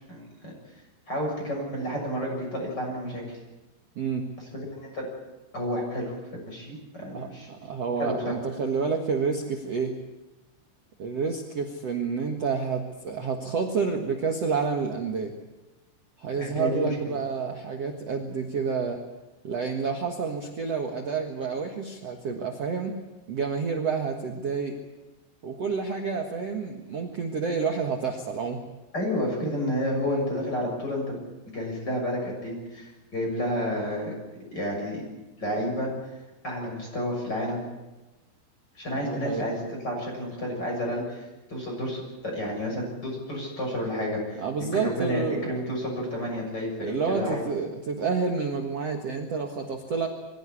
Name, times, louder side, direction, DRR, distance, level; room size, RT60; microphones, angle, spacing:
voice 1, 0.1-0.5 1.1-3.4 4.5-5.1 5.5-6.1 6.5-7.5 8.0-8.4 16.4-17.1 28.9-31.2 31.5-34.1 34.5-35.0 35.4-35.9 36.4-37.6 38.8-39.6 39.8-47.4, left 1 dB, 20° left, 0 dB, 7.1 m, -30 dB
voice 2, 3.9-4.3 7.1-9.9 11.0-15.3 16.2-19.0 19.4-23.0 23.3-24.8 25.4-28.6 30.1-30.3 39.0-39.5 44.4-45.5 46.8-50.1, right 5 dB, 65° right, 3 dB, 1.6 m, -29 dB
23.5 x 16.5 x 9.8 m, 1.1 s
omnidirectional pair, 5.3 m